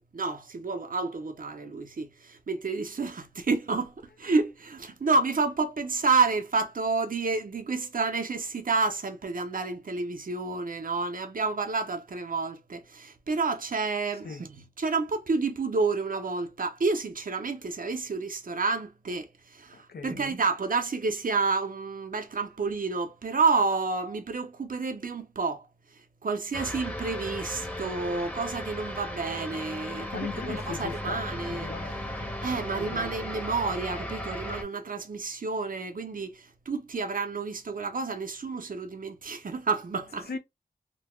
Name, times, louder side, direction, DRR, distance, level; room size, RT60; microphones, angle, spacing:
voice 1, 0.1-19.3 19.5-19.8 20.0-25.6 26.2-31.7 32.4-36.3 36.7-40.4, right 4 dB, 60° right, 0.7 m, -29 dB
voice 2, 19.7-20.2 30.1-32.3 32.7-33.2 40.3-40.4, left 5 dB, 80° left, 0.6 m, -39 dB
sound 1, 26.5-34.6, left 1 dB, 10° left, 0.8 m, -36 dB
3.9 x 2.3 x 2.3 m
wide cardioid pair, 65°, 16 cm